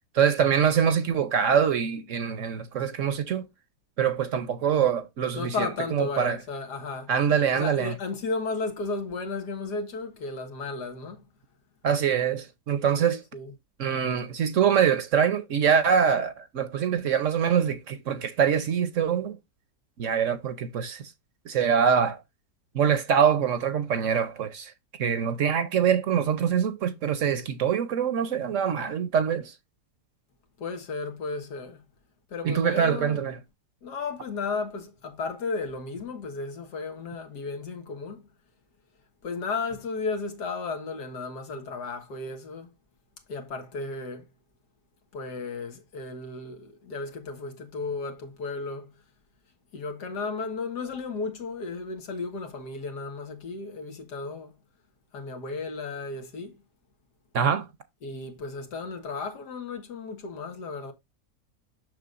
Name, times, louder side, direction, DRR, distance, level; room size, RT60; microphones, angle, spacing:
voice 1, 0.1-3.4 4.0-6.4 7.1-7.9 11.8-13.2 13.8-19.4 20.0-21.1 21.5-22.2 22.7-24.7 25.0-29.5 32.4-33.4 57.3-57.7, right 7 dB, 60° right, 1.0 m, -24 dB
voice 2, 5.4-7.1 7.5-11.2 13.0-13.5 30.6-31.8 32.3-33.2 33.8-38.2 39.2-42.7 43.3-44.3 45.1-48.9 49.7-54.5 55.1-56.5 58.0-60.9, left 4 dB, 85° left, 2.1 m, -34 dB
6.9 x 6.3 x 2.5 m
omnidirectional pair, 1.7 m